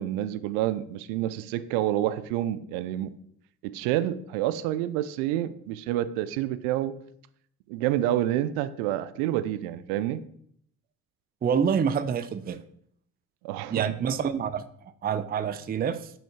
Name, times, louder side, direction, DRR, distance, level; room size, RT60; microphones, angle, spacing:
voice 1, 0.0-3.1 3.6-6.9 7.7-10.2 13.4-13.8, right 13 dB, 65° right, 13 dB, 0.6 m, -28 dB
voice 2, 11.4-12.6 13.7-16.1, right 7 dB, 20° right, 12 dB, 0.5 m, -27 dB
8.7 x 5.6 x 2.9 m, 0.65 s
figure-of-eight pair, 45°, 48 cm